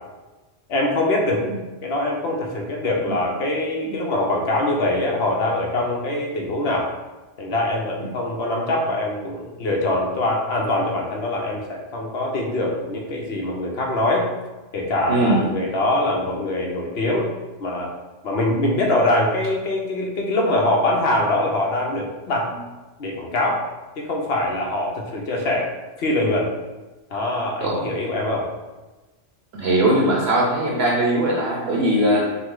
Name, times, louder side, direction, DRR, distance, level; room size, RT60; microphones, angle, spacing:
voice 1, 0.7-1.5 1.8-6.9 7.4-14.3 14.7-17.3 17.6-17.9 18.2-22.5 23.0-23.6 24.0-25.7 26.0-26.5 27.1-28.5 32.1-32.3, left 1 dB, 60° left, -1 dB, 1.0 m, -23 dB
voice 2, 15.1-15.4 27.6-27.9 29.5-32.3, right 1 dB, 60° right, -3 dB, 0.9 m, -20 dB
5.8 x 2.1 x 3.7 m, 1.2 s
omnidirectional pair, 1.2 m